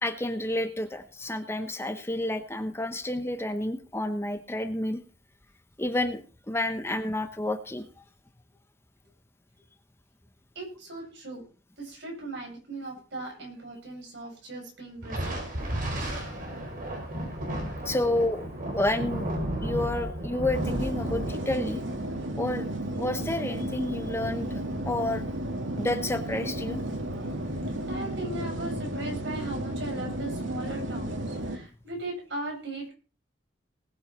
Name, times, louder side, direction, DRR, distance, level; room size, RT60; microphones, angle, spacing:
voice 1, 0.0-5.0 5.8-7.9 17.8-18.5 18.7-19.3 19.6-21.8 22.3-22.7 23.0-25.2 25.8-26.8, left 1 dB, 15° left, 8 dB, 1.1 m, -30 dB
voice 2, 10.5-11.4 11.8-16.0 27.8-32.9, right 2 dB, 65° right, 0 dB, 8.0 m, -38 dB
Thunder, 15.0-23.8, right 1 dB, 45° right, 5.4 m, -34 dB
sound 1, 20.5-31.6, right 1 dB, 85° right, 2.5 m, -33 dB
19.5 x 8.1 x 4.3 m, 0.36 s
head